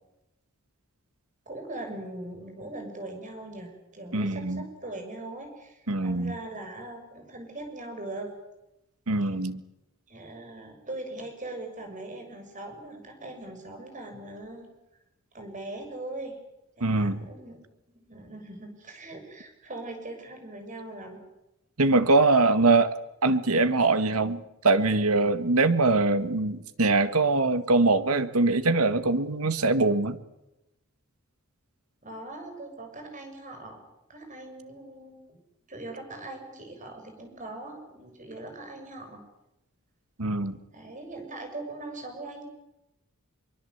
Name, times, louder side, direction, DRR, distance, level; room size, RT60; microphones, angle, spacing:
voice 1, 1.4-8.3 10.1-14.7 15.3-16.4 16.8-17.6 17.9-21.2 32.0-33.8 34.1-35.4 35.7-39.2 40.7-42.4, right 2 dB, 35° right, 4 dB, 6.8 m, -40 dB
voice 2, 4.1-4.6 5.9-6.3 9.1-9.6 16.8-17.2 21.8-22.9 23.2-30.2 40.2-40.6, right 3 dB, 90° right, 11 dB, 1.7 m, -23 dB
24.0 x 23.5 x 8.1 m, 0.90 s
head